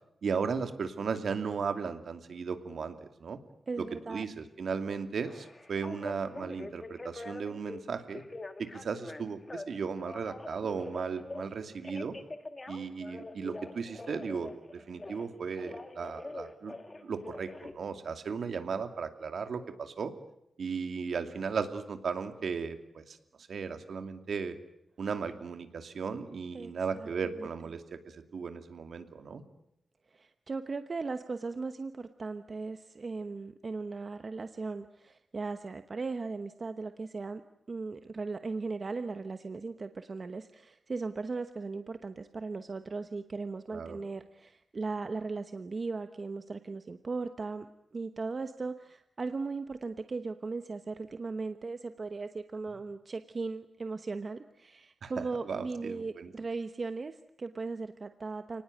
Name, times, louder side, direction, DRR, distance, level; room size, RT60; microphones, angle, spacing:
voice 1, 0.2-3.4 3.8-8.2 8.6-12.1 12.7-20.1 20.6-24.6 25.0-29.4 43.7-44.0 55.0-56.3, right 5 dB, 65° right, 8 dB, 2.6 m, -36 dB
voice 2, 3.7-4.2 26.5-27.1 30.1-37.4 37.7-47.7 47.9-58.6, right 4 dB, 35° right, 9 dB, 1.0 m, -37 dB
Telephone, 5.3-7.8 8.1-9.7 10.0-11.5 11.8-15.3 15.6-17.7, left 2 dB, 25° left, 1.8 m, -44 dB
30.0 x 19.0 x 9.3 m, 0.80 s
wide cardioid pair, 160°, 0 cm